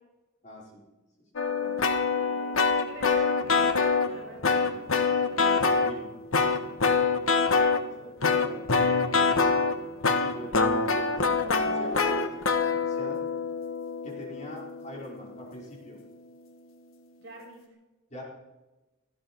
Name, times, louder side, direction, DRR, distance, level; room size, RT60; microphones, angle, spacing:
voice 1, 0.4-0.8 1.5-1.8 5.7-6.1 7.8-9.0 10.3-13.2 14.0-16.0 18.1-18.2, equal, 35° left, -3 dB, 4.9 m, -42 dB
sound 1, 1.4-4.2 4.4-5.9 6.3-7.8 8.2-15.2, left 4 dB, 90° left, 1.4 m, -25 dB
voice 2, 2.1-2.5 2.8-4.8 6.7-6.8 17.2-17.6, right 1 dB, 60° right, -2 dB, 6.3 m, -47 dB
18.5 x 15.0 x 4.7 m, 1.1 s
head